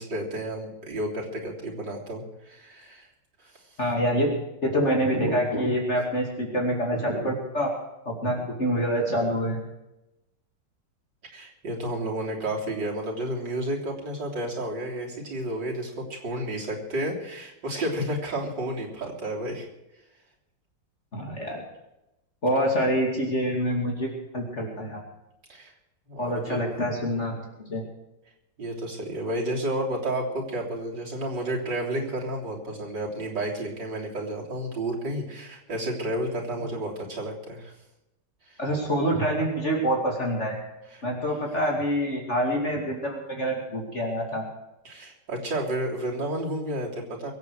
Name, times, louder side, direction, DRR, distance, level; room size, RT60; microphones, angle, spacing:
voice 1, 0.0-3.1 3.4-3.6 11.3-19.7 25.5-25.7 26.1-26.6 28.6-37.7 38.5-38.6 40.9-41.0 44.8-47.3, right 1 dB, 85° right, -2 dB, 4.2 m, -31 dB
voice 2, 3.8-4.3 4.6-7.7 8.1-9.6 21.1-21.6 22.4-24.1 24.3-25.0 26.2-27.4 27.7-27.8 38.6-40.5 41.0-44.4, equal, 40° left, 0 dB, 3.0 m, -26 dB
22.5 x 8.4 x 6.4 m, 0.91 s
omnidirectional pair, 1.9 m